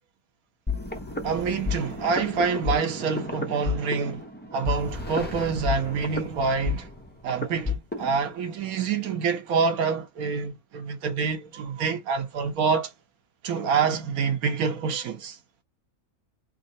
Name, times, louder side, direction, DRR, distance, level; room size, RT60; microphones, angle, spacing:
sound 1, 0.7-8.2, left 4 dB, 10° left, 0.6 m, -32 dB
voice 1, 1.2-4.2 4.5-6.9 7.2-12.9 13.4-15.4, right 5 dB, 75° right, 1.3 m, -26 dB
3.7 x 2.2 x 3.8 m
omnidirectional pair, 1.5 m